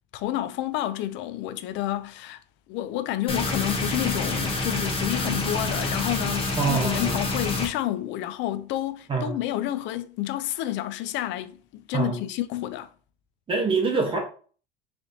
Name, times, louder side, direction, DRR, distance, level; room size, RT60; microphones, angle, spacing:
voice 1, 0.1-2.4 2.7-12.9, left 14 dB, 65° left, 0.4 m, -29 dB
sound 1, 3.3-7.7, left 2 dB, 25° left, 0.9 m, -27 dB
voice 2, 6.6-7.1 9.1-9.3 11.9-12.2 13.5-14.2, right 4 dB, 25° right, 1.0 m, -24 dB
3.9 x 3.3 x 2.7 m
cardioid pair, 145°, 21 cm